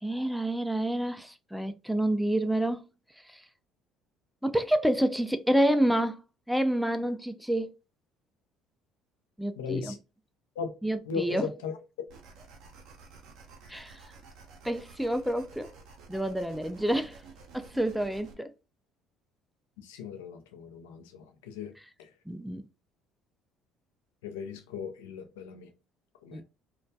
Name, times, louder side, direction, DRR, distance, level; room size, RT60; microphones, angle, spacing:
voice 1, 0.0-2.8 3.3-3.4 4.4-6.2 6.5-7.7 9.4-9.9 10.8-11.5 13.7-14.0 14.6-15.7 16.1-17.2 17.5-18.5 22.3-22.7 26.3-26.4, right 1 dB, ahead, 0.3 m, -28 dB
voice 2, 9.6-10.0 10.6-10.7 11.1-11.8 19.8-21.7 22.0-22.1 24.2-25.7 26.2-26.4, left 6 dB, 85° left, 0.4 m, -37 dB
sound 1, 12.1-18.3, right 4 dB, 70° right, 0.5 m, -52 dB
2.2 x 2.2 x 2.6 m
hypercardioid pair, 70°, 0 cm